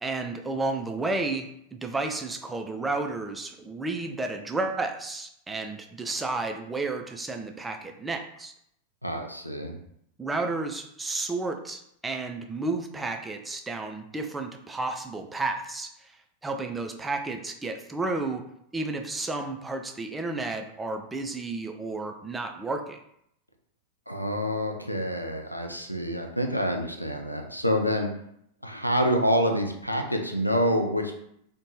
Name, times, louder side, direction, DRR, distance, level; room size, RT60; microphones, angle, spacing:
voice 1, 0.0-8.5 10.2-16.1 16.4-18.4 18.7-23.0, right 3 dB, 10° right, 4 dB, 0.3 m, -32 dB
voice 2, 9.0-9.7 24.1-28.1 28.6-31.1, equal, 90° left, 3 dB, 0.3 m, -27 dB
2.5 x 2.1 x 3.0 m, 0.73 s
figure-of-eight pair, 90°, 0 cm